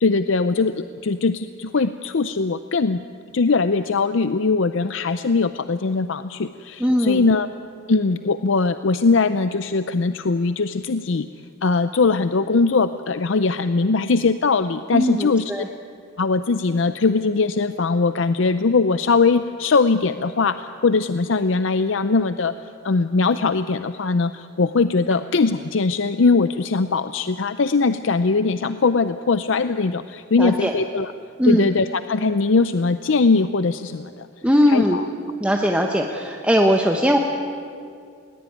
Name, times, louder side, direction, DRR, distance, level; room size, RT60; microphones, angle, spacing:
voice 1, 0.0-3.0 3.3-7.5 7.9-11.3 11.6-15.6 16.2-22.5 22.8-31.1 31.5-34.3 34.7-35.0, left 4 dB, 65° left, 11 dB, 0.6 m, -21 dB
voice 2, 6.8-7.2 14.9-15.7 30.4-30.7 31.4-31.7 34.4-35.0 35.4-37.2, equal, 5° right, 1 dB, 1.0 m, -19 dB
20.5 x 19.5 x 9.3 m, 2.4 s
head